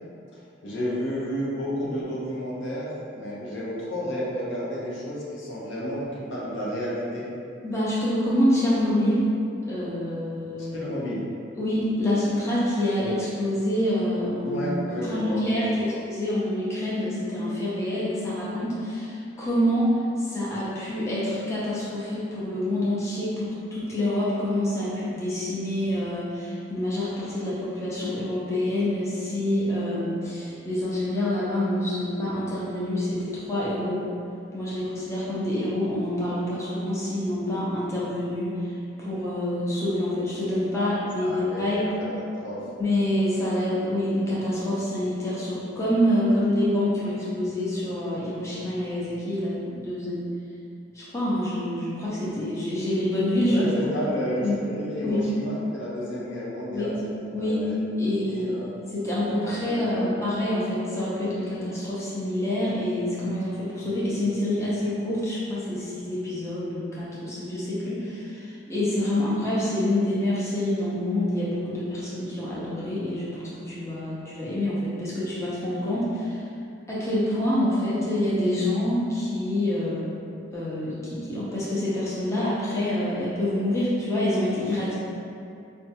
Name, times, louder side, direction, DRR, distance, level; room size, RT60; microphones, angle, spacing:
voice 1, 0.3-2.9 3.1-7.3 10.6-11.3 14.4-15.9 40.7-42.6 53.5-56.9 57.4-57.8 58.2-58.7 59.4-60.3, equal, 75° left, -6 dB, 0.8 m, -32 dB
voice 2, 7.6-9.3 9.7-10.8 11.6-14.6 15.1-19.9 20.2-34.0 34.5-38.7 39.0-41.9 42.8-50.3 50.9-53.7 54.4-54.6 55.0-55.2 56.7-56.9 57.3-57.6 58.0-58.7 58.9-76.4 76.9-80.1 80.5-84.9, left 1 dB, 15° left, -9 dB, 0.6 m, -26 dB
4.6 x 2.2 x 2.7 m, 2.5 s
head